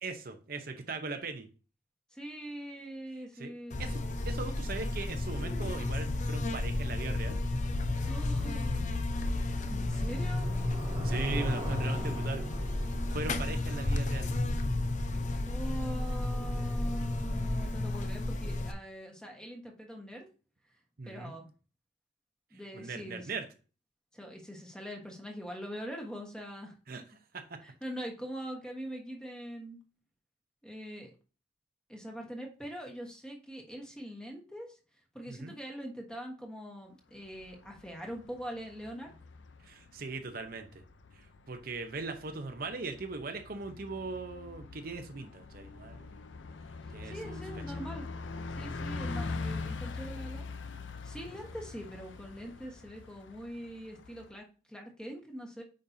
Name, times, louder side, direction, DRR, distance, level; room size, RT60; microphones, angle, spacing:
voice 1, 0.0-1.5 3.4-3.5 3.8-7.4 11.0-12.4 12.8-14.3 21.0-21.3 22.7-23.5 26.9-27.0 27.3-27.6 35.3-35.6 39.6-40.8 41.1-46.1 46.9-47.6, right 3 dB, 50° right, 6 dB, 0.8 m, -39 dB
voice 2, 2.1-3.8 8.0-8.9 9.7-10.5 13.3-13.6 15.4-20.2 21.1-21.5 22.5-23.3 24.1-26.7 27.6-29.8 30.6-31.1 31.9-34.8 35.1-39.1 46.8-48.1 48.5-50.5 51.0-55.6, equal, 5° left, 1 dB, 1.3 m, -43 dB
Buzz, 3.7-18.7, left 2 dB, 40° left, 0.6 m, -32 dB
Bicycle, 9.0-15.5, right 1 dB, 30° right, 1.3 m, -45 dB
Bus, 37.2-54.3, left 3 dB, 85° left, 0.6 m, -43 dB
8.7 x 5.3 x 2.7 m, 0.35 s
head